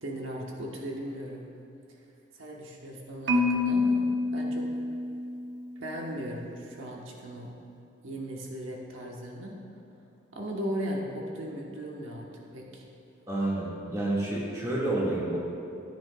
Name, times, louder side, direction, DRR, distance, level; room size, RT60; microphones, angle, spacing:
voice 1, 0.0-1.5 2.3-4.7 5.8-7.6 8.0-9.6 10.3-12.3 12.5-12.8, equal, 85° right, -1 dB, 1.2 m, -37 dB
Marimba xylophone, 3.3-5.5, left 3 dB, 70° right, 1.0 m, -27 dB
voice 2, 13.3-15.4, right 1 dB, 15° right, -6 dB, 1.8 m, -29 dB
14.5 x 9.6 x 2.3 m, 2.7 s
head